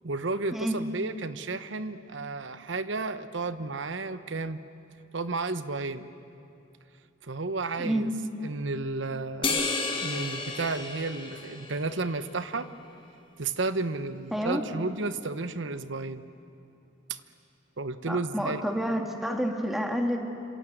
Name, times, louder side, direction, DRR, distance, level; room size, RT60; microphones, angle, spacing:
voice 1, 0.0-4.6 5.1-6.1 7.2-8.1 8.4-9.7 10.0-12.7 13.4-16.2 17.1-17.2 17.8-18.7, right 3 dB, 65° right, 12 dB, 1.0 m, -32 dB
sound 1, 9.4-12.1, left 3 dB, 25° left, 2.2 m, -32 dB
voice 2, 14.3-14.6 18.1-20.2, equal, ahead, 3 dB, 1.9 m, -29 dB
27.0 x 26.5 x 7.9 m, 2.6 s
head